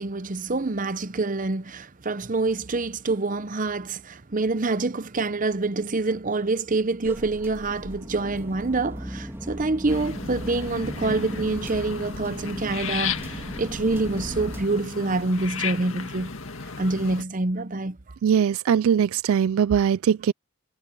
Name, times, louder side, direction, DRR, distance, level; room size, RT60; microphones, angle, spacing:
voice 1, 0.0-16.3 16.8-18.0, right 3 dB, 35° right, 0.7 m, -26 dB
sound 1, 7.0-14.7, equal, 10° right, 2.6 m, -37 dB
sound 2, 9.9-17.2, left 5 dB, 60° left, 2.1 m, -34 dB
voice 2, 18.2-20.3, right 8 dB, 65° right, 0.3 m, -21 dB
head